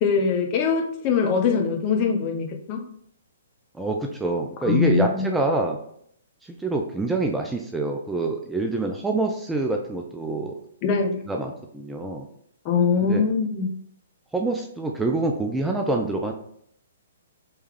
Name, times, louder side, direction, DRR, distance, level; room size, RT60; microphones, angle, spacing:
voice 1, 0.0-2.8 4.6-5.2 10.8-11.2 12.6-13.7, left 5 dB, 35° left, 3 dB, 0.7 m, -22 dB
voice 2, 3.7-5.8 6.6-10.5 11.3-12.3 13.0-13.2 14.3-16.3, right 2 dB, 5° right, 2 dB, 0.4 m, -26 dB
3.3 x 3.1 x 3.4 m, 0.67 s
figure-of-eight pair, 120°, 0 cm